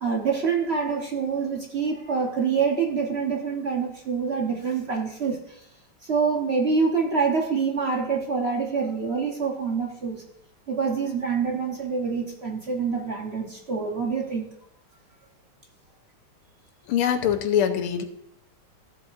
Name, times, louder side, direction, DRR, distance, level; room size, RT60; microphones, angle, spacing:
voice 1, 0.0-5.6 6.0-10.2 10.7-14.5, right 5 dB, 40° right, 1 dB, 1.0 m, -26 dB
voice 2, 16.9-18.1, left 9 dB, 85° left, 7 dB, 1.7 m, -23 dB
14.0 x 7.7 x 2.5 m, 0.80 s
omnidirectional pair, 2.3 m